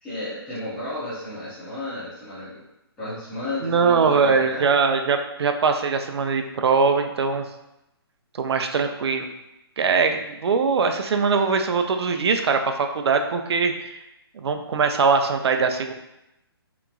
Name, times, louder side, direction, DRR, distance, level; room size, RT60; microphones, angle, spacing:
voice 1, 0.0-2.6 3.0-4.7, left 1 dB, 5° left, -13 dB, 0.5 m, -33 dB
voice 2, 3.6-7.4 8.4-9.3 9.8-14.0 14.3-15.9, right 5 dB, 85° right, 6 dB, 0.4 m, -21 dB
2.8 x 2.3 x 2.3 m, 0.89 s
hypercardioid pair, 170°, 13 cm